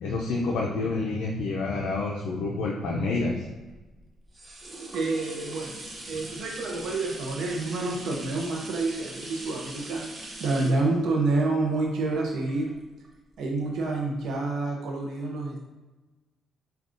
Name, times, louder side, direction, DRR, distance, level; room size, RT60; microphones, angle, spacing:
voice 1, 0.0-3.4 6.1-6.2, left 3 dB, 75° left, -2 dB, 0.4 m, -28 dB
sound 1, 3.3-13.1 13.6-13.7, right 2 dB, 35° right, 0.7 m, -42 dB
voice 2, 4.9-5.7 6.1-10.1 10.4-12.7 13.4-15.6, right 2 dB, 70° right, -1 dB, 0.5 m, -28 dB
4.9 x 2.3 x 2.5 m, 1.2 s
cardioid pair, 90°, 0 cm